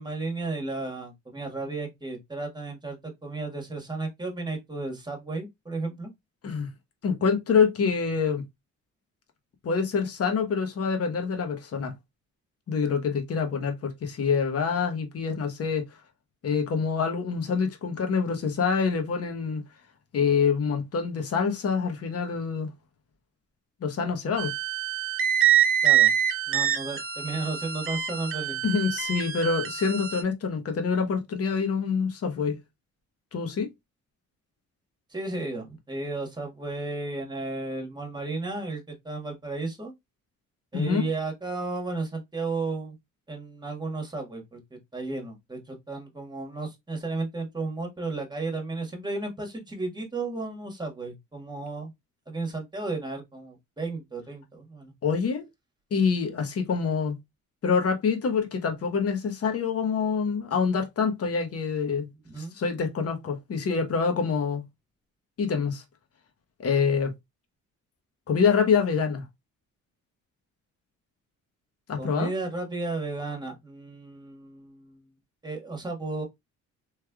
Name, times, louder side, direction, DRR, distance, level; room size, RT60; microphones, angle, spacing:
voice 1, 0.0-6.1 25.8-26.1 26.5-28.6 35.1-39.9 40.7-43.0 43.3-44.6 44.9-51.9 52.3-54.9 62.3-62.5 72.0-75.1 75.4-76.2, right 3 dB, 15° right, 1.5 m, -33 dB
voice 2, 7.0-8.4 9.6-11.9 12.7-15.9 16.4-19.6 20.1-22.7 23.8-24.5 28.6-32.6 33.3-33.7 40.7-41.1 55.0-55.5 55.9-57.2 57.6-62.1 62.4-64.6 65.4-65.8 66.6-67.1 68.3-69.2 71.9-72.3, left 5 dB, 50° left, 1.1 m, -26 dB
sound 1, 24.4-30.2, right 10 dB, 45° right, 0.8 m, -25 dB
3.2 x 3.2 x 2.3 m
cardioid pair, 90°, 30 cm